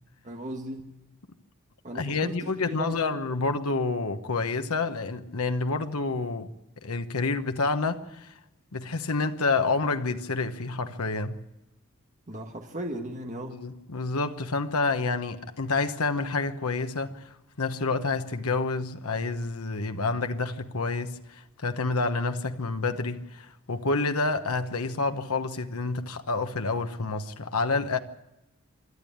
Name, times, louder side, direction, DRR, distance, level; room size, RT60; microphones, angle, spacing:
voice 1, 0.2-1.0 1.8-3.2 12.3-13.6, right 1 dB, 35° right, 1.5 m, -37 dB
voice 2, 1.9-6.5 6.8-8.3 8.7-11.4 13.5-28.0, left 3 dB, 85° left, 1.1 m, -28 dB
26.0 x 12.5 x 8.7 m
head